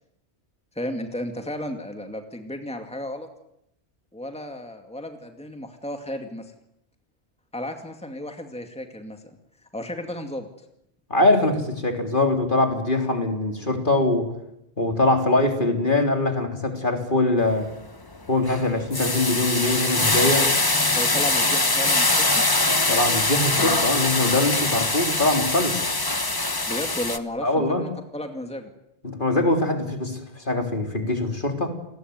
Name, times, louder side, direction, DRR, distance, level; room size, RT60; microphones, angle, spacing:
voice 1, 0.7-3.3 4.1-6.5 7.5-9.2 9.7-10.5 20.4-20.5 20.9-22.4 26.7-28.7, left 1 dB, 5° left, 5 dB, 2.3 m, -33 dB
voice 2, 11.1-14.3 14.8-17.7 18.3-20.5 22.9-25.9 27.4-27.8 29.0-31.7, left 2 dB, 50° left, 4 dB, 3.9 m, -22 dB
sound 1, 17.4-17.7 18.2-27.2, left 2 dB, 20° left, 1.3 m, -23 dB
29.5 x 20.0 x 9.6 m, 0.82 s
omnidirectional pair, 1.1 m